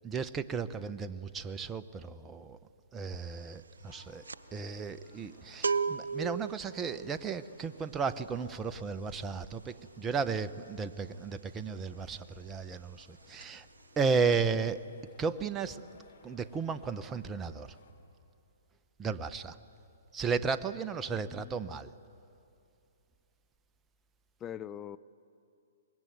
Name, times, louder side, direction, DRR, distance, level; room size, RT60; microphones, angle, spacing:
voice 1, 0.0-2.6 2.9-4.2 4.5-13.7 14.0-14.8 15.2-15.8 16.2-17.7 19.0-19.5 20.1-21.9, right 5 dB, 15° right, 11 dB, 0.9 m, -34 dB
sound 1, 3.1-3.4 3.7-12.2 12.5-12.7 13.0-13.8 14.1-14.5, right 5 dB, 80° right, 0.6 m, -37 dB
sound 2, 3.9-17.9, left 4 dB, 65° left, 4.2 m, -61 dB
voice 2, 21.1-21.8 24.4-25.0, left 10 dB, 20° left, 14 dB, 0.5 m, -43 dB
25.0 x 21.5 x 9.3 m, 2.6 s
hypercardioid pair, 130°, 0 cm